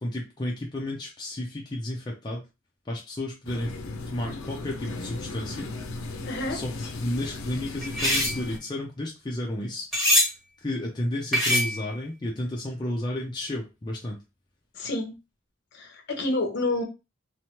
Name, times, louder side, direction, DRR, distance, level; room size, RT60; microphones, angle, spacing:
voice 1, 0.0-2.4 2.9-3.7 4.1-5.7 6.5-6.7 7.0-9.9 10.2-10.3 10.6-14.2, left 1 dB, 20° left, -2 dB, 0.5 m, -32 dB
sound 1, 3.4-8.6, left 3 dB, 85° left, 0.4 m, -36 dB
voice 2, 6.2-6.6 14.7-15.1 15.7-16.8, left 2 dB, 55° left, 2 dB, 0.8 m, -28 dB
sound 2, 7.8-8.4 9.9-10.3 11.3-11.9, left 1 dB, ahead, 1.3 m, -22 dB
3.1 x 2.1 x 2.8 m, 0.27 s
head